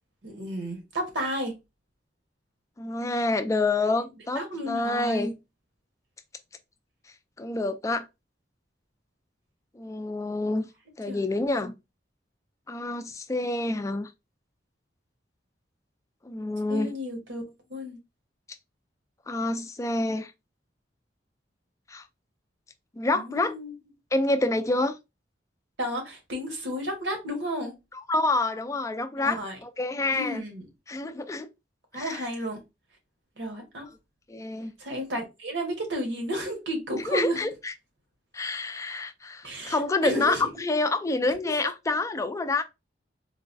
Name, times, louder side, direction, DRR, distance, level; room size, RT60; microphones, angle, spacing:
voice 1, 0.2-1.5 4.3-5.3 11.1-11.2 11.5-11.7 16.7-18.0 23.1-23.7 25.8-27.7 29.2-29.6 30.1-30.7 31.9-32.6 33.4-33.9 34.8-37.5 39.4-40.5, equal, 80° right, 1.2 m, -32 dB
voice 2, 2.8-5.3 7.4-8.1 9.7-10.7 11.0-11.7 12.7-14.1 16.2-16.9 19.3-20.3 21.9-22.1 23.0-23.5 24.1-25.0 28.1-30.4 30.9-31.5 31.9-32.3 34.3-34.7 37.1-37.7 38.3-42.6, left 2 dB, 15° left, 0.3 m, -27 dB
3.9 x 2.2 x 2.6 m
head